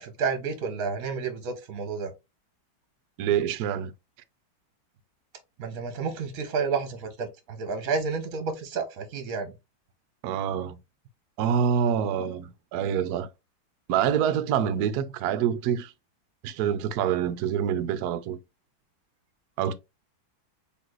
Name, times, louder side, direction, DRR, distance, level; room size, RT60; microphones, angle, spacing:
voice 1, 0.0-2.1 5.6-9.5, right 5 dB, 55° right, 1.1 m, -30 dB
voice 2, 3.2-3.9 10.2-10.8 11.4-13.3 13.9-15.9 16.4-18.4 19.6-19.7, right 8 dB, 75° right, 0.9 m, -26 dB
4.1 x 3.1 x 3.1 m
omnidirectional pair, 2.2 m